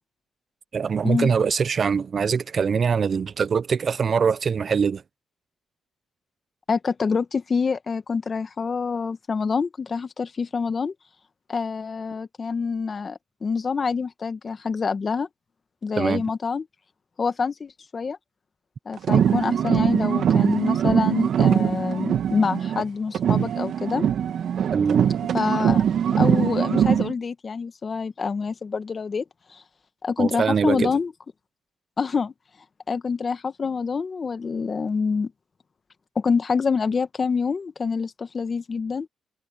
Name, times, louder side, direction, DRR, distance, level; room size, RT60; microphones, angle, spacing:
voice 1, 0.7-5.0 16.0-16.2 24.7-25.1 30.2-30.9, right 6 dB, 50° right, 0.7 m, -23 dB
voice 2, 6.7-10.9 11.5-15.3 15.8-16.6 17.2-18.2 18.8-24.1 25.3-25.8 26.2-29.2 29.5-29.6 30.0-31.1 32.0-32.3 32.9-35.3 36.1-39.1, left 5 dB, 40° left, 1.7 m, -26 dB
sound 1, 19.0-22.9 23.1-27.1, right 8 dB, 65° right, 1.9 m, -22 dB
cardioid pair, 75°, 0 cm